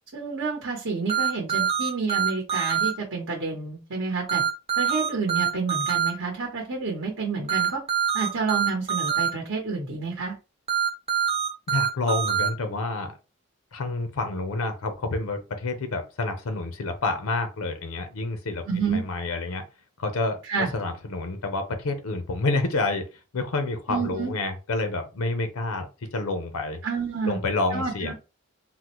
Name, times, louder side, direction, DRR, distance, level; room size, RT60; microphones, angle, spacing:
voice 1, 0.1-4.4 4.7-7.8 8.1-10.3 18.7-19.0 20.4-20.7 23.9-24.3 26.8-27.4 27.7-28.1, right 4 dB, 65° right, -2 dB, 0.9 m, -29 dB
sound 1, 1.1-2.9 4.3-6.1 7.5-9.3 10.7-12.5, right 8 dB, 30° right, 0.6 m, -24 dB
voice 2, 11.7-13.1 13.7-19.6 20.0-20.4 20.7-23.1 23.3-26.8 27.2-28.1, left 2 dB, 90° left, 8 dB, 0.6 m, -28 dB
3.7 x 2.0 x 2.9 m, 0.31 s
head